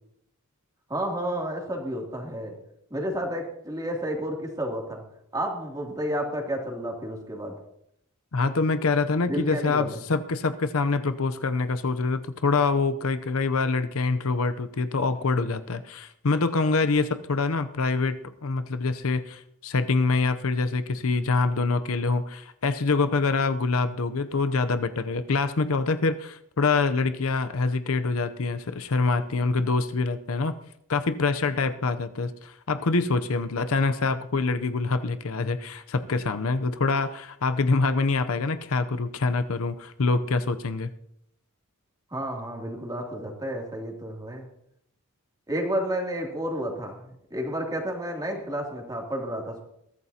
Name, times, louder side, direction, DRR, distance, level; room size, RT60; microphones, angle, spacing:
voice 1, 0.9-2.6 2.9-5.0 5.3-7.5 9.3-10.0 42.1-44.5 45.5-49.6, equal, 15° right, 0 dB, 2.7 m, -31 dB
voice 2, 8.3-30.5 30.9-40.9, left 3 dB, 65° left, 10 dB, 0.7 m, -25 dB
21.5 x 14.0 x 2.8 m, 0.76 s
head